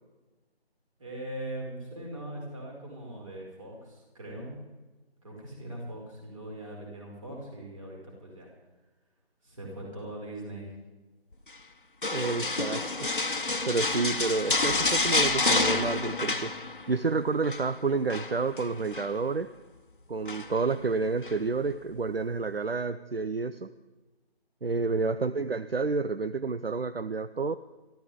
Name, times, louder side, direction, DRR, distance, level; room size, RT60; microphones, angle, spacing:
voice 1, 1.0-4.6 5.2-8.5 9.4-10.7 24.6-25.0, right 1 dB, 30° right, -2 dB, 5.5 m, -41 dB
sound 1, 12.0-17.0 17.3-17.7 18.1-19.1 20.3-20.7 21.2-21.4, left 3 dB, 50° left, 1.3 m, -28 dB
voice 2, 12.1-12.8 13.7-16.5 16.9-19.5 20.1-23.7 24.6-27.6, right 4 dB, 65° right, 12 dB, 0.7 m, -29 dB
24.0 x 14.0 x 3.7 m, 1.2 s
figure-of-eight pair, 160°, 32 cm